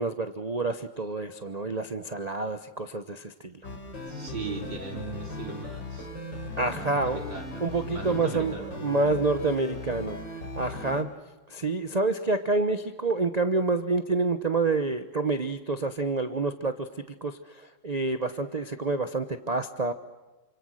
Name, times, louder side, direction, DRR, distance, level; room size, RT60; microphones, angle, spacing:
voice 1, 0.0-3.5 6.6-7.3 7.6-11.1 11.5-16.9 17.2-19.9, right 3 dB, 30° right, 9 dB, 0.8 m, -28 dB
sound 1, 3.6-11.0, left 2 dB, 80° left, 4.3 m, -38 dB
voice 2, 4.0-6.1 6.6-8.7, right 4 dB, 80° right, 2 dB, 4.7 m, -39 dB
29.0 x 26.0 x 6.4 m, 1.2 s
omnidirectional pair, 2.0 m